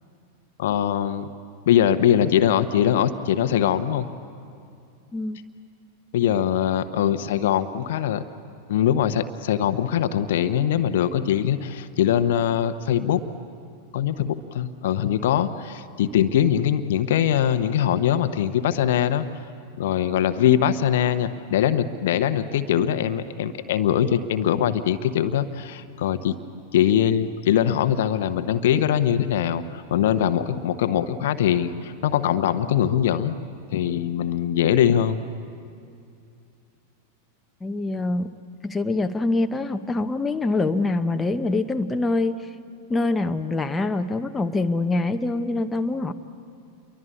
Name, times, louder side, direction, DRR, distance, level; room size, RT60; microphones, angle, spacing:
voice 1, 0.6-1.3 1.7-4.1 6.1-8.2 8.7-13.2 13.9-19.3 19.8-26.4 26.7-33.4 33.7-35.2, left 10 dB, 55° left, 11 dB, 1.0 m, -22 dB
voice 2, 37.6-38.3 38.6-42.4 42.9-46.1, left 2 dB, 10° left, 6 dB, 1.0 m, -24 dB
29.0 x 23.5 x 8.5 m, 2.5 s
figure-of-eight pair, 90°, 0 cm